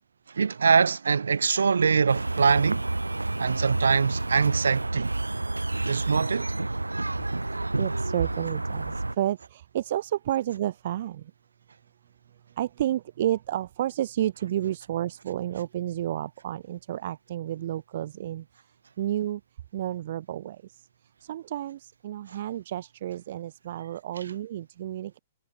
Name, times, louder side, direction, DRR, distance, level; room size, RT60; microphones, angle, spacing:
voice 1, 0.3-2.9 3.4-5.1 5.9-6.5 22.3-22.4, right 5 dB, 75° right, 2.9 m, -23 dB
sound 1, 2.1-9.1, right 2 dB, 90° right, 1.1 m, -29 dB
voice 2, 7.8-11.3 12.6-18.5 19.0-19.4 19.7-20.8 21.2-25.2, right 12 dB, 55° right, 1.8 m, -31 dB
figure-of-eight pair, 115°, 0 cm